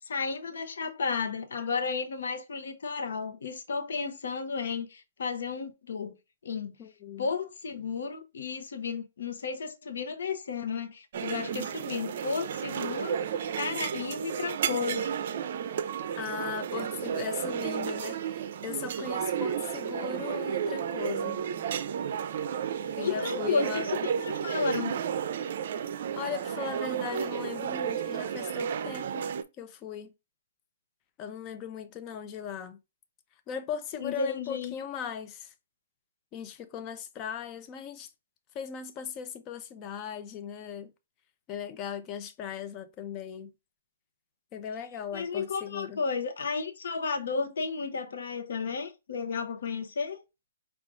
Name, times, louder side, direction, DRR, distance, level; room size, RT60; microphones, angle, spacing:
voice 1, 0.1-6.1 6.4-6.7 7.2-15.1 23.0-25.0 34.0-34.7 45.1-50.2, left 5 dB, 70° left, 0.8 m, -33 dB
voice 2, 6.8-7.3 16.2-21.4 23.0-23.9 26.2-29.3 29.6-30.1 31.2-32.8 33.5-35.5 36.3-38.1 38.5-40.9 41.5-43.5 44.5-46.0, left 8 dB, 25° left, 0.5 m, -38 dB
sound 1, 11.1-29.4, right 8 dB, 55° right, 0.5 m, -32 dB
4.8 x 2.4 x 3.7 m
hypercardioid pair, 150°, 0 cm